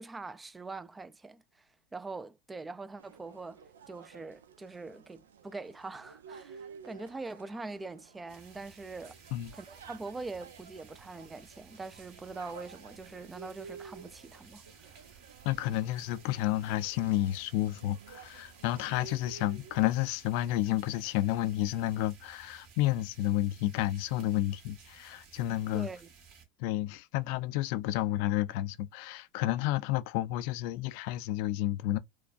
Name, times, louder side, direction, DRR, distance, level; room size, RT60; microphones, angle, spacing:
voice 1, 0.0-1.4 1.9-3.6 3.9-9.2 9.5-14.9 25.7-26.1, right 3 dB, 15° right, 0.3 m, -43 dB
sound 1, 3.0-22.3, right 6 dB, 90° right, 0.4 m, -53 dB
sound 2, 8.3-26.4, right 6 dB, 55° right, 2.0 m, -56 dB
voice 2, 15.4-25.9 26.6-32.0, left 15 dB, 65° left, 0.4 m, -31 dB
4.5 x 2.2 x 2.4 m
hypercardioid pair, 100°, 0 cm